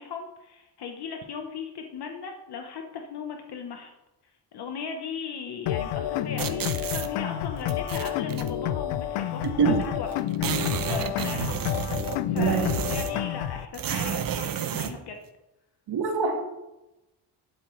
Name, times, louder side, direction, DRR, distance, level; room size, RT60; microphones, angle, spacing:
voice 1, 0.0-3.9 4.5-10.2 10.9-15.2, left 5 dB, 65° left, 4 dB, 1.1 m, -38 dB
sound 1, 5.7-13.7, left 11 dB, 85° left, 0.6 m, -29 dB
sound 2, 6.4-7.1 7.7-8.5 9.4-9.5 9.8-9.9 10.1-13.3 13.7-15.0, right 8 dB, 50° right, 0.8 m, -31 dB
voice 2, 9.4-9.8 12.3-12.9 15.9-16.4, right 5 dB, 70° right, 4 dB, 1.7 m, -25 dB
12.0 x 7.2 x 3.2 m, 0.97 s
cardioid pair, 85°, 43 cm